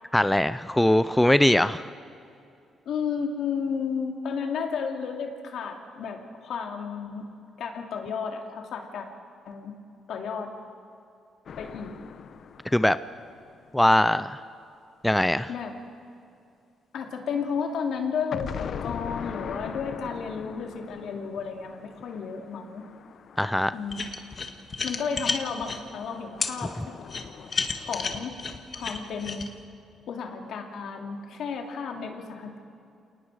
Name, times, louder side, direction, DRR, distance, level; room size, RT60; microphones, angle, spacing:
voice 1, 0.1-1.8 12.7-13.0 13.7-14.4 15.0-15.5 23.4-23.7, left 1 dB, 5° left, 14 dB, 0.5 m, -21 dB
voice 2, 2.9-7.2 7.6-9.1 9.4-9.7 10.1-10.5 11.6-12.0 15.5-15.7 16.9-22.8 23.7-24.2 24.8-26.9 27.8-28.4 28.7-29.5 30.1-32.6, left 6 dB, 70° left, 3 dB, 2.5 m, -32 dB
sound 1, 11.5-14.3 18.3-24.6 25.8-28.3, left 7 dB, 55° left, 0.8 m, -41 dB
sound 2, 23.9-25.8 26.4-26.5 27.1-29.5, left 4 dB, 40° left, 1.7 m, -31 dB
27.5 x 19.5 x 4.9 m, 2.5 s
cardioid pair, 90°, 0 cm